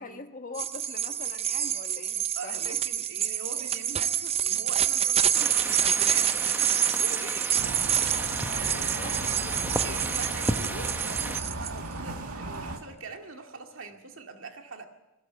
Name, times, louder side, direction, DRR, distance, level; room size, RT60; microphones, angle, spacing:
voice 1, 0.0-2.8 8.6-9.7, left 3 dB, 35° left, 7 dB, 1.3 m, -43 dB
sound 1, 0.5-11.7, right 9 dB, 25° right, 0.6 m, -27 dB
voice 2, 2.4-7.9 8.4-9.3 9.8-14.8, right 3 dB, 60° right, 4 dB, 2.2 m, -43 dB
sound 2, 5.3-11.4, right 1 dB, 10° right, 1.1 m, -35 dB
sound 3, 7.6-12.8, right 2 dB, 90° right, 2.4 m, -36 dB
21.0 x 16.0 x 8.2 m, 0.98 s
head